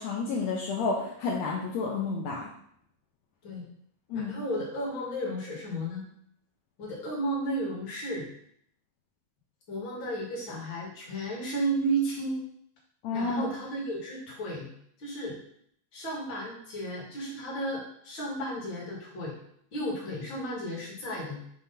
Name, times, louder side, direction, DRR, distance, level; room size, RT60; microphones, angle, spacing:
voice 1, 0.0-2.4 4.1-4.3 13.0-13.5, left 4 dB, 75° left, -3 dB, 2.0 m, -30 dB
voice 2, 4.1-6.1 6.8-8.3 9.7-12.4 13.1-14.7 15.0-15.4 15.9-19.4 19.7-21.4, right 1 dB, 45° left, -3 dB, 2.2 m, -33 dB
5.7 x 3.1 x 5.5 m, 0.67 s
omnidirectional pair, 3.3 m